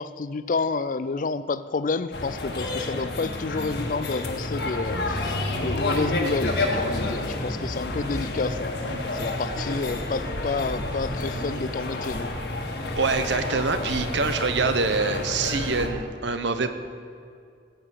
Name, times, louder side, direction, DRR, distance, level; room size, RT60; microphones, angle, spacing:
voice 1, 0.0-8.7 9.1-12.4, left 4 dB, 45° left, 14 dB, 0.4 m, -29 dB
sound 1, 2.1-15.9, left 2 dB, 65° left, 1.6 m, -29 dB
voice 2, 13.0-16.7, right 4 dB, 75° right, 9 dB, 0.9 m, -25 dB
15.0 x 7.8 x 6.4 m, 2.4 s
head